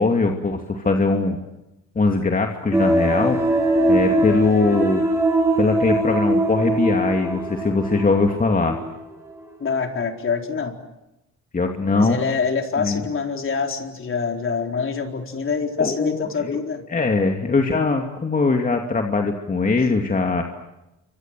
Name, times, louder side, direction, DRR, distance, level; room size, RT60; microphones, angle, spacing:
voice 1, 0.0-1.4 1.9-3.4 3.9-5.0 5.6-8.8 11.5-12.2 12.8-13.0 15.8-16.6 16.9-20.4, left 3 dB, 30° left, 3 dB, 2.7 m, -21 dB
sound 1, 2.7-8.9 9.3-9.4, right 1 dB, 10° right, 7.6 m, -22 dB
voice 2, 9.6-10.8 11.9-16.8, left 5 dB, 45° left, 4 dB, 4.3 m, -25 dB
28.5 x 25.0 x 7.7 m, 0.92 s
cardioid pair, 90°, 30 cm